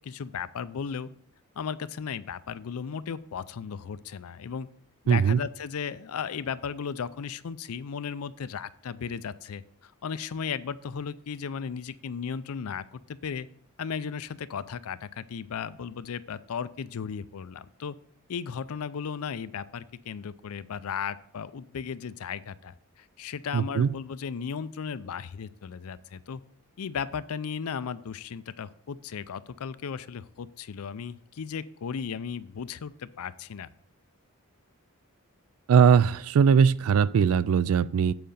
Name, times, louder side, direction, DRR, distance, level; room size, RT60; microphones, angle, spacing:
voice 1, 0.0-1.1 1.6-4.7 5.0-13.5 13.8-18.0 18.3-26.4 26.8-33.7, left 6 dB, 75° left, 16 dB, 0.4 m, -35 dB
voice 2, 5.1-5.4 23.5-23.9 35.7-38.1, right 7 dB, 70° right, 19 dB, 0.3 m, -20 dB
7.8 x 5.1 x 6.8 m, 0.67 s
head